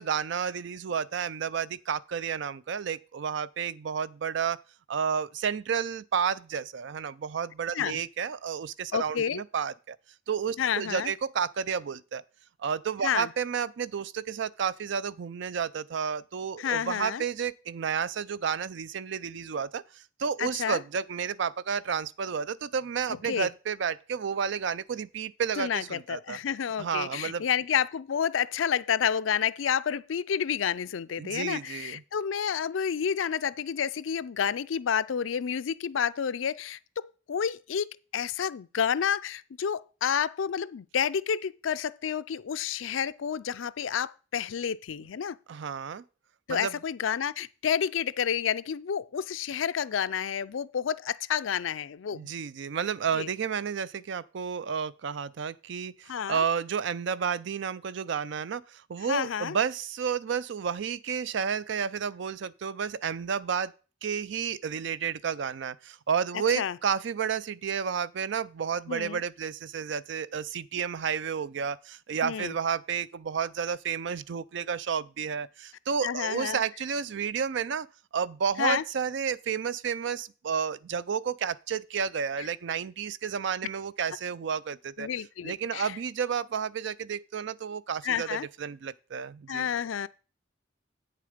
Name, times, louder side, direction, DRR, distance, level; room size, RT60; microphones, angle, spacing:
voice 1, 0.0-4.6 4.9-10.0 10.3-12.2 12.6-26.4 26.8-27.4 31.2-32.0 45.5-46.0 46.5-46.8 52.1-63.7 64.0-77.9 78.1-85.1 85.4-89.7, right 7 dB, 65° right, 0.4 m, -31 dB
voice 2, 8.9-9.4 10.6-11.1 13.0-13.3 16.6-17.2 20.4-20.8 23.2-23.5 25.6-37.9 38.1-45.4 46.5-52.3 53.1-53.3 56.1-56.4 59.1-59.6 66.6-66.8 68.9-69.2 72.2-72.5 76.0-76.6 78.6-78.8 85.0-86.0 88.0-88.5 89.5-90.1, left 8 dB, 85° left, 0.4 m, -30 dB
8.6 x 6.7 x 5.0 m
head